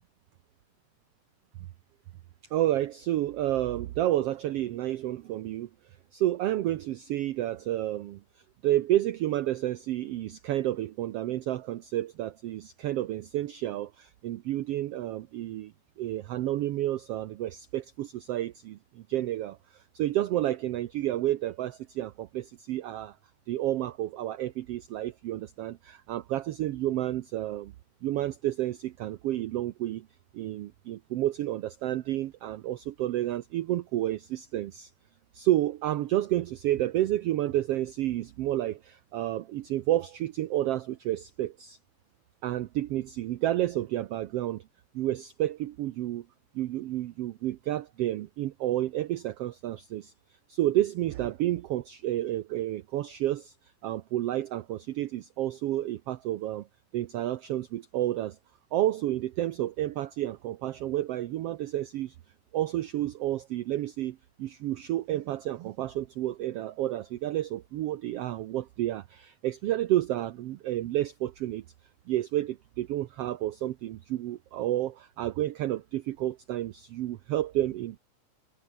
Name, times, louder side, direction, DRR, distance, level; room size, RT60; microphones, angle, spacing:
voice 1, 2.5-5.7 6.1-8.2 8.6-23.1 23.5-27.7 28.0-30.1 30.3-34.9 35.3-41.8 42.4-44.6 44.9-46.2 46.5-50.1 50.5-53.5 53.8-56.7 56.9-58.4 58.7-62.1 62.5-71.6 72.1-78.0, right 14 dB, 85° right, 1.3 m, -30 dB
omnidirectional pair, 3.7 m